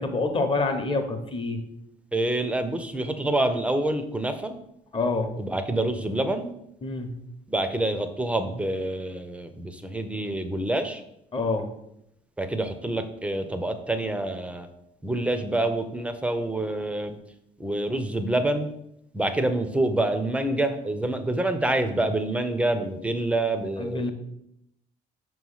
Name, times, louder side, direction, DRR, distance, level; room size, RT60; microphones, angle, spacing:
voice 1, 0.0-1.6 4.9-5.3 6.8-7.1 11.3-11.6 23.8-24.1, left 3 dB, 30° left, 5 dB, 0.9 m, -26 dB
voice 2, 2.1-4.5 5.4-6.5 7.5-9.5 9.9-11.0 12.4-14.7 15.0-17.2 17.6-18.7 19.1-24.1, right 1 dB, 5° right, 8 dB, 0.5 m, -26 dB
5.6 x 3.1 x 5.5 m, 0.79 s
cardioid pair, 110°, 17 cm